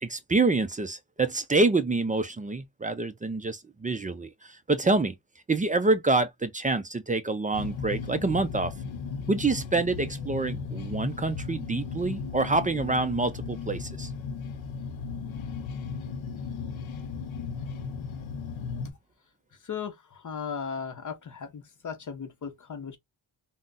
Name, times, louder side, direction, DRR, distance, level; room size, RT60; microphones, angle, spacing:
voice 1, 0.0-5.1 5.5-8.7 9.3-14.1, right 3 dB, 20° right, 0.3 m, -27 dB
sound 1, 7.5-18.9, left 5 dB, 70° left, 0.7 m, -36 dB
voice 2, 19.6-23.0, left 6 dB, 40° left, 0.6 m, -37 dB
3.7 x 2.1 x 2.5 m
cardioid pair, 115°, 48 cm